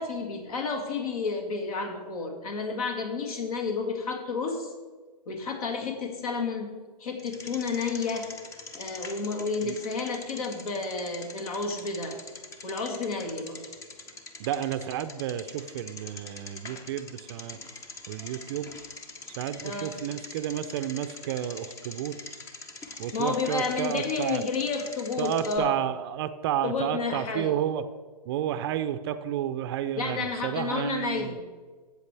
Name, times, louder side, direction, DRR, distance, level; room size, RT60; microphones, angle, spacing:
voice 1, 0.0-4.7 5.3-6.7 7.0-8.3 8.8-12.2 12.6-13.6 19.6-20.0 23.1-25.8 26.6-27.6 30.0-31.4, left 4 dB, 60° left, 4 dB, 2.1 m, -31 dB
Bicycle, 7.2-25.6, left 3 dB, 15° left, 0.7 m, -44 dB
voice 2, 14.4-17.6 18.1-18.7 19.4-22.2 23.0-24.4 25.2-27.8 28.3-31.4, right 10 dB, 40° right, 12 dB, 0.5 m, -31 dB
13.0 x 8.2 x 3.3 m, 1.4 s
hypercardioid pair, 135°, 21 cm